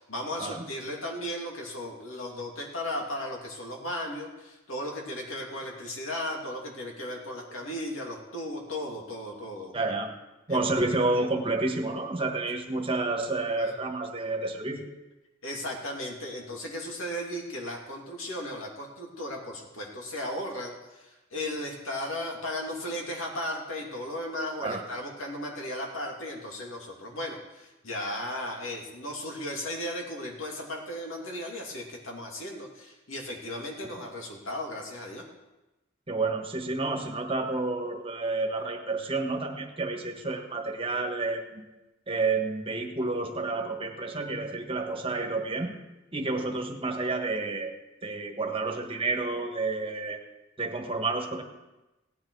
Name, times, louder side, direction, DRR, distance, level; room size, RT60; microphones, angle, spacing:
voice 1, 0.0-9.7 10.5-10.8 13.6-13.7 15.4-35.3, left 1 dB, 75° left, 0 dB, 2.7 m, -36 dB
voice 2, 9.7-10.1 10.5-14.9 24.6-24.8 36.1-41.6 42.1-45.7 46.1-47.7 48.0-50.2 50.6-51.4, right 3 dB, 25° right, 3 dB, 1.4 m, -30 dB
17.5 x 9.7 x 4.8 m, 1.0 s
head